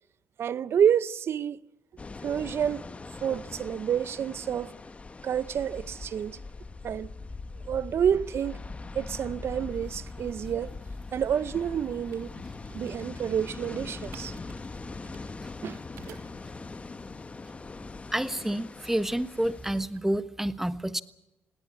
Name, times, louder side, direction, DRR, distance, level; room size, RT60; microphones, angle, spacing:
voice 1, 0.4-1.6 2.2-2.9 3.2-4.7 5.2-6.4 6.8-7.1 7.7-8.6 8.9-10.7 11.1-12.3 12.7-14.3 15.6-15.8 16.1-16.2, right 8 dB, 55° right, 0.7 m, -28 dB
sound 1, 2.0-19.9, left 3 dB, 25° left, 1.1 m, -41 dB
sound 2, 12.1-16.5, right 9 dB, 85° right, 2.8 m, -54 dB
voice 2, 18.1-21.0, right 1 dB, 5° right, 1.3 m, -29 dB
19.0 x 18.5 x 8.5 m
supercardioid pair, 75°, 5 cm